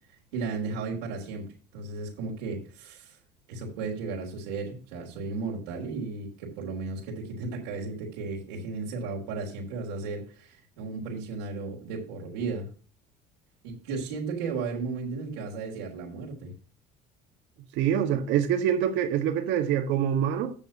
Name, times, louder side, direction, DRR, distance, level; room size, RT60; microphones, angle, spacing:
voice 1, 0.3-3.2 3.5-12.7 13.6-16.5, right 4 dB, 85° right, 3.3 m, -35 dB
voice 2, 17.7-20.5, right 9 dB, 70° right, 1.9 m, -25 dB
16.0 x 6.6 x 2.9 m
hypercardioid pair, 75°, 20 cm